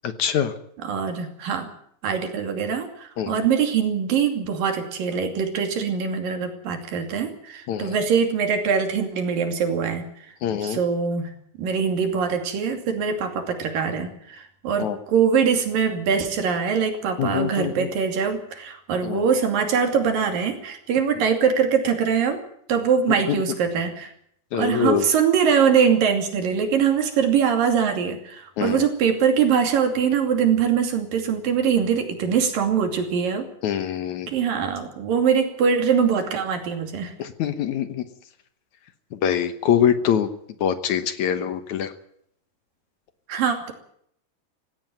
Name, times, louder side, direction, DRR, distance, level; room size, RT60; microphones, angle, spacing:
voice 1, 0.0-0.5 3.2-3.5 7.7-8.0 10.4-10.8 14.8-15.0 17.2-17.9 19.0-19.2 23.3-23.4 24.5-25.1 28.6-28.9 33.6-34.3 37.2-38.0 39.1-40.3 40.6-41.9, left 9 dB, 65° left, 11 dB, 2.3 m, -24 dB
voice 2, 0.8-1.7 2.0-10.3 10.6-11.3 11.6-22.4 22.7-24.1 24.5-33.5 34.3-37.1 43.3-43.7, right 7 dB, 80° right, 6 dB, 4.4 m, -23 dB
17.0 x 17.0 x 9.4 m, 0.68 s
omnidirectional pair, 4.0 m